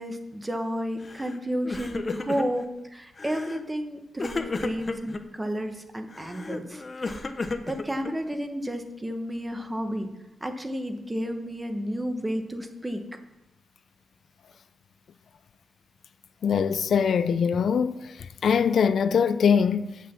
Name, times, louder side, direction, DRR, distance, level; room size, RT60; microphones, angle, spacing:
voice 1, 0.0-7.2 7.7-10.1 10.4-13.0, equal, 15° right, 1.0 m, -32 dB
Crying sobbing, 1.0-1.4 1.6-2.7 3.2-3.6 4.2-5.2 6.1-8.4, left 3 dB, 30° left, 0.7 m, -33 dB
voice 2, 16.4-18.1 18.4-20.1, left 6 dB, 65° left, 0.4 m, -22 dB
8.1 x 5.8 x 7.2 m
wide cardioid pair, 125°, 0 cm